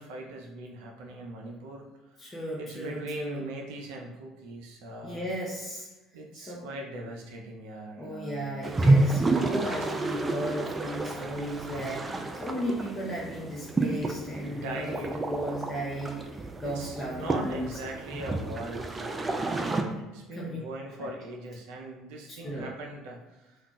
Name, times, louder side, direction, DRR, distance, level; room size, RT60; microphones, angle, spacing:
voice 1, 0.0-1.9 2.2-5.3 6.1-8.9 14.4-15.2 16.6-23.6, right 1 dB, 75° right, 0 dB, 0.5 m, -40 dB
voice 2, 2.2-3.5 5.0-5.9 6.3-6.7 8.0-17.7 19.9-20.0 20.3-20.6 21.0-21.1 22.4-22.7, equal, 25° left, -5 dB, 0.7 m, -35 dB
sound 1, 8.6-19.8, right 2 dB, 25° right, 0.4 m, -29 dB
2.3 x 2.3 x 3.8 m, 1.1 s
hypercardioid pair, 70°, 0 cm